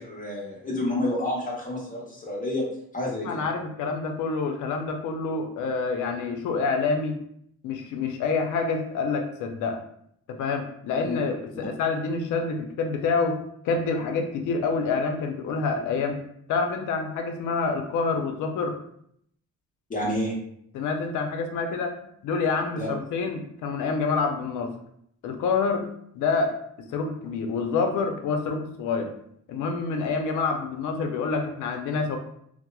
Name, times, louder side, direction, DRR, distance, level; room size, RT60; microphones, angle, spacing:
voice 1, 0.0-2.7 2.9-3.4 11.0-11.2 19.9-20.3 22.8-22.9, left 1 dB, 25° left, -4 dB, 0.7 m, -29 dB
voice 2, 3.2-7.2 7.6-9.8 10.3-13.4 13.6-16.2 16.5-18.8 20.7-22.0 22.2-24.7 25.2-25.9 26.1-29.1 29.5-32.2, left 4 dB, 80° left, 5 dB, 0.5 m, -27 dB
2.8 x 2.0 x 2.2 m, 0.69 s
cardioid pair, 90°, 30 cm